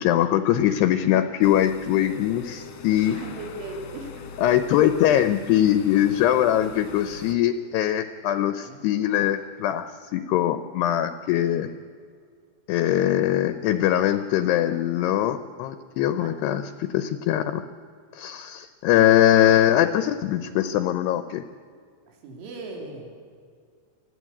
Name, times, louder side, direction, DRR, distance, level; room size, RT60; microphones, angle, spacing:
voice 1, 0.0-3.2 4.4-11.7 12.7-17.6 18.1-21.4, left 12 dB, 80° left, 10 dB, 2.5 m, -22 dB
sound 1, 1.4-7.3, left 5 dB, 60° left, 2.2 m, -42 dB
voice 2, 3.1-4.3 8.6-8.8 11.3-11.6 16.2-16.3 22.1-23.1, right 3 dB, 80° right, 1 dB, 5.5 m, -38 dB
25.0 x 15.5 x 8.5 m, 2.1 s
omnidirectional pair, 5.4 m